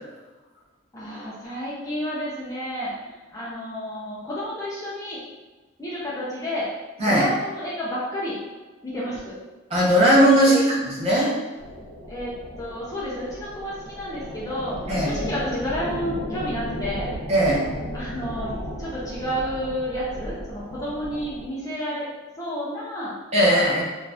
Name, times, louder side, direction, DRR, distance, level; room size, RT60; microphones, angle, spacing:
voice 1, 0.9-5.2 5.8-6.7 7.0-8.4 8.8-9.3 10.4-10.7 12.1-17.1 17.9-18.5 18.8-22.1 22.4-23.1 23.4-23.8, equal, 15° left, -7 dB, 0.5 m, -31 dB
voice 2, 9.7-10.5 11.0-11.3 14.9-15.1 17.3-17.6 23.3-23.8, equal, 30° right, -6 dB, 0.7 m, -18 dB
sound 1, 11.6-21.5, equal, 70° right, 1.1 m, -35 dB
2.6 x 2.4 x 3.3 m, 1.2 s
head